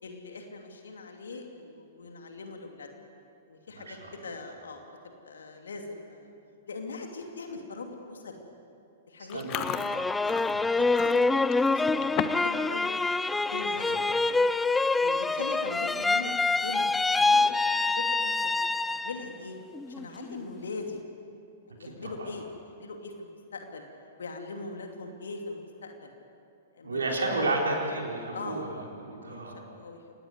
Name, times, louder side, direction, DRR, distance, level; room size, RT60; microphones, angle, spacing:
voice 1, 0.0-2.9 3.5-4.8 5.2-6.3 6.7-8.4 9.1-9.7 10.0-12.9 13.5-14.4 14.9-17.5 17.7-18.5 18.9-19.6 19.9-21.0 21.7-22.5 22.8-23.9 24.2-26.1 26.7-27.5 28.3-28.7 29.3-30.0, left 3 dB, 65° left, 3 dB, 2.7 m, -41 dB
voice 2, 3.7-4.1 9.3-10.1 10.5-10.7 13.9-14.0 22.0-22.3 26.8-28.7 29.0-29.6, right 2 dB, 70° right, -1 dB, 4.1 m, -32 dB
Chewing mastication, 9.3-12.6 12.9-13.2 13.6-13.8 14.6-14.7 14.9-15.3 15.7-15.8 17.2-17.8, left 11 dB, 30° left, 1.1 m, -36 dB
sound 1, 9.5-19.3 19.7-20.4, left 3 dB, 10° left, 0.5 m, -26 dB
26.5 x 19.5 x 8.1 m, 2.6 s
figure-of-eight pair, 105°, 0 cm